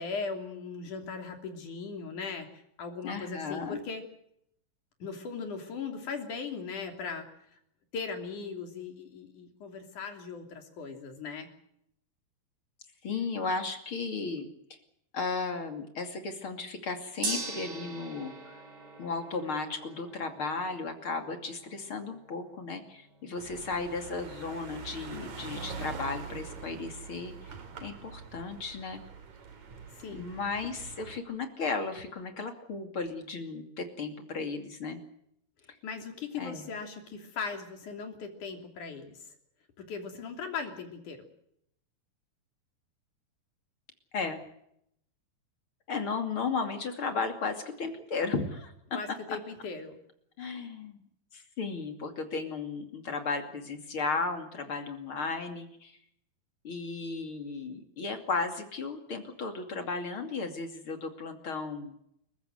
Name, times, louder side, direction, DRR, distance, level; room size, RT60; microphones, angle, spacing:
voice 1, 0.0-4.0 5.0-7.6 7.9-11.5 29.9-30.3 35.6-39.3 39.8-41.2 48.9-50.0, left 5 dB, 55° left, 5 dB, 4.4 m, -39 dB
voice 2, 3.0-3.8 13.0-14.5 15.1-18.6 19.0-27.5 27.8-29.0 30.1-35.0 36.4-36.7 44.1-44.4 45.9-48.7 49.3-49.4 50.4-51.0 51.3-56.0 56.6-61.9, left 4 dB, 35° left, 6 dB, 3.0 m, -35 dB
Gong, 17.2-27.4, right 3 dB, 70° right, 6.5 m, -44 dB
sound 1, 23.4-31.2, right 5 dB, 55° right, 3.9 m, -44 dB
29.5 x 15.0 x 7.9 m, 0.74 s
omnidirectional pair, 4.3 m